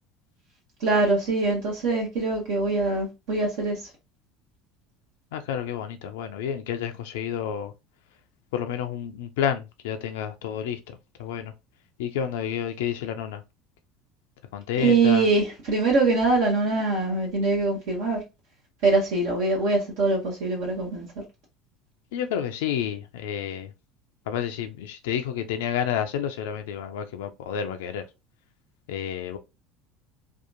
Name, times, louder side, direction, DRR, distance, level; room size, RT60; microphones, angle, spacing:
voice 1, 0.8-3.9 14.8-18.2 18.8-21.1, right 3 dB, 65° right, 0.8 m, -23 dB
voice 2, 5.3-7.7 8.5-11.5 12.0-13.4 14.5-15.3 22.1-23.7 24.3-28.1 28.9-29.4, left 9 dB, 70° left, 0.3 m, -30 dB
2.7 x 2.3 x 2.5 m
figure-of-eight pair, 65°, 0 cm